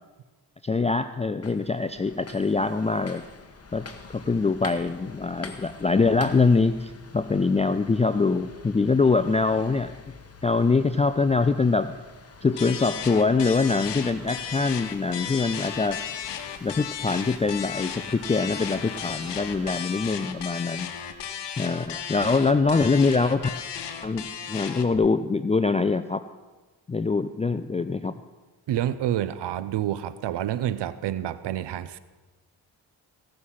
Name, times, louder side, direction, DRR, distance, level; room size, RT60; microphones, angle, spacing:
voice 1, 0.6-3.2 3.7-9.9 10.4-12.0 12.4-16.0 16.6-20.9 21.6-23.5 24.0-26.2 26.9-28.1, left 4 dB, 15° left, 11 dB, 0.4 m, -24 dB
sound 1, 1.4-19.8, left 4 dB, 35° left, 1.2 m, -46 dB
sound 2, 12.6-25.0, left 8 dB, 80° left, 1.0 m, -35 dB
voice 2, 28.7-32.0, right 11 dB, 80° right, 15 dB, 0.6 m, -28 dB
16.5 x 6.5 x 5.6 m, 1.2 s
cardioid pair, 65°, 42 cm